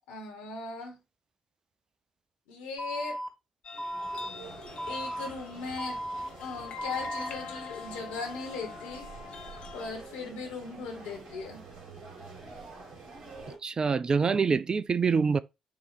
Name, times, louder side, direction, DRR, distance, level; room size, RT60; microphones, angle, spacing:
voice 1, 0.1-1.0 2.5-3.2 4.9-6.0 6.4-9.1 9.7-11.6, left 4 dB, 70° left, 1.7 m, -38 dB
Alarm, 2.8-3.3 3.8-4.3 4.8-5.3 5.8-6.3 6.8-7.3, equal, 10° right, 2.2 m, -35 dB
sound 1, 3.6-9.9, left 6 dB, 50° left, 1.1 m, -44 dB
sound 2, 3.7-13.6, right 3 dB, 55° right, 2.5 m, -47 dB
voice 2, 13.6-15.4, right 5 dB, 35° right, 0.4 m, -25 dB
7.2 x 3.0 x 4.9 m
figure-of-eight pair, 45°, 2 cm